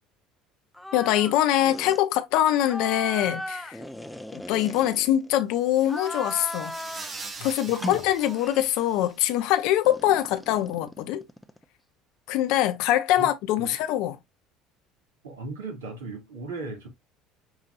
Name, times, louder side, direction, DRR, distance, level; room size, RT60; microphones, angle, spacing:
sound 1, 0.7-1.4 1.6-2.0 2.6-5.4 5.8-7.2 7.7-8.8 9.8-11.6, left 1 dB, 5° left, 0.6 m, -37 dB
voice 1, 0.9-3.8 4.3-6.8 7.4-11.2 12.3-14.2, left 13 dB, 65° left, 0.8 m, -23 dB
sound 2, 5.6-9.4, right 4 dB, 35° right, 1.3 m, -43 dB
voice 2, 7.4-8.1 13.2-13.3 13.6-13.7 15.2-16.9, right 3 dB, 85° right, 2.0 m, -37 dB
7.1 x 2.7 x 2.5 m
hypercardioid pair, 70°, 0 cm